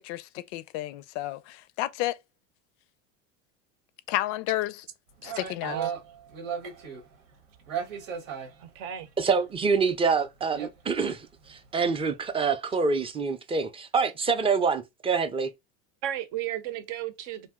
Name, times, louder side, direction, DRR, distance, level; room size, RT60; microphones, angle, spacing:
voice 1, 0.0-2.2 4.1-4.8 5.2-5.8, left 16 dB, 65° left, 0.5 m, -31 dB
sound 1, 5.2-7.2 7.6-9.4 9.8-9.9 10.2-10.7 11.1-11.2 11.5-11.7 11.9-12.1, right 7 dB, 90° right, 1.0 m, -36 dB
voice 2, 8.6-9.1 16.0-17.5, right 11 dB, 65° right, 0.7 m, -34 dB
voice 3, 9.2-15.5, right 5 dB, 15° right, 0.4 m, -26 dB
2.6 x 2.0 x 3.5 m
supercardioid pair, 95°, 38 cm